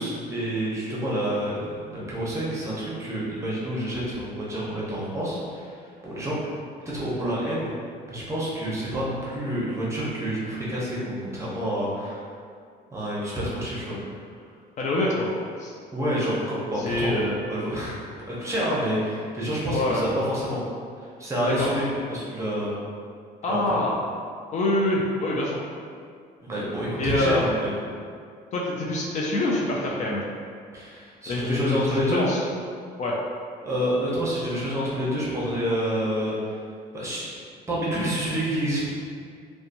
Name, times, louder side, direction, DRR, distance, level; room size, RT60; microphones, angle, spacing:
voice 1, 0.0-5.7 6.0-6.4 6.9-7.7 8.1-12.2 12.9-14.0 15.9-17.2 17.5-18.0 18.3-20.6 21.2-22.7 23.5-23.8 26.4-27.7 30.7-32.2 33.6-36.3 36.9-37.3 37.7-38.9, equal, 15° right, -6 dB, 0.7 m, -28 dB
voice 2, 14.8-15.3 15.6-15.7 16.7-17.4 19.7-20.0 21.5-21.7 23.4-24.0 24.5-25.6 27.0-27.5 28.5-30.2 31.3-32.4 33.0-33.2, left 2 dB, 45° left, -3 dB, 0.4 m, -25 dB
2.9 x 2.2 x 2.5 m, 2.2 s
cardioid pair, 110°, 17 cm